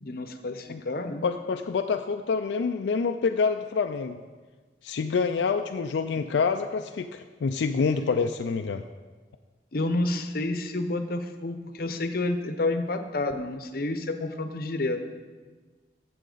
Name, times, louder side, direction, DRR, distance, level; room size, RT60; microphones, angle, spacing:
voice 1, 0.0-1.2 6.2-6.3 9.7-15.0, left 2 dB, 55° left, 8 dB, 0.8 m, -29 dB
voice 2, 1.2-4.2 4.8-8.8, left 5 dB, 85° left, 6 dB, 0.4 m, -27 dB
13.0 x 7.7 x 3.9 m, 1.4 s
head